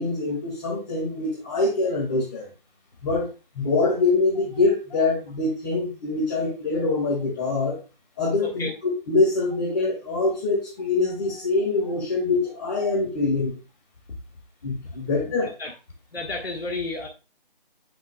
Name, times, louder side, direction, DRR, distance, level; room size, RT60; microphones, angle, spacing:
voice 1, 0.0-2.4 3.0-7.8 8.2-8.7 9.1-13.5 14.6-15.5, left 3 dB, 20° left, -5 dB, 2.1 m, -24 dB
voice 2, 8.4-8.7 14.8-14.9 15.2-15.7 16.1-17.1, left 2 dB, 90° left, 1 dB, 1.7 m, -32 dB
9.1 x 6.0 x 2.3 m, 0.30 s
figure-of-eight pair, 165°, 29 cm